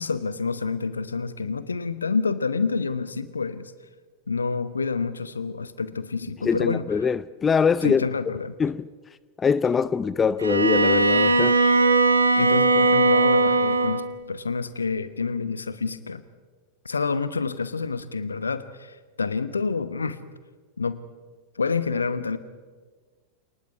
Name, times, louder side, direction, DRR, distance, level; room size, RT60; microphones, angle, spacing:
voice 1, 0.0-3.7 4.3-6.8 7.8-8.5 12.4-16.2 16.8-20.2 20.8-21.0 21.6-22.4, left 4 dB, 75° left, 1.1 m, -28 dB
voice 2, 6.4-8.0 8.6-8.9 9.4-11.6, left 6 dB, 20° left, 0.5 m, -23 dB
Bowed string instrument, 10.4-14.1, right 3 dB, 80° right, 1.4 m, -19 dB
28.5 x 19.5 x 4.8 m
figure-of-eight pair, 90°, 0 cm